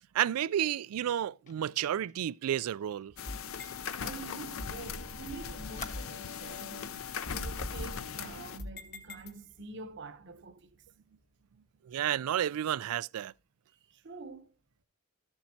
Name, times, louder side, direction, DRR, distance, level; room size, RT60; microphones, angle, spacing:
voice 1, 0.1-3.1 11.9-13.3, right 10 dB, 75° right, 0.3 m, -31 dB
Fire, 1.5-4.9 5.2-5.3 5.8-6.7 7.2-7.3 7.6-7.9, left 4 dB, 35° left, 1.3 m, -51 dB
sound 1, 3.1-4.0 4.6-6.2 6.6-6.7 7.3-9.7, left 1 dB, 50° left, 1.3 m, -43 dB
sound 2, 3.2-8.6, left 7 dB, 65° left, 0.6 m, -40 dB
voice 2, 4.0-7.0 7.3-10.7 13.9-14.5, right 3 dB, 55° right, 0.9 m, -46 dB
13.5 x 7.3 x 2.8 m
head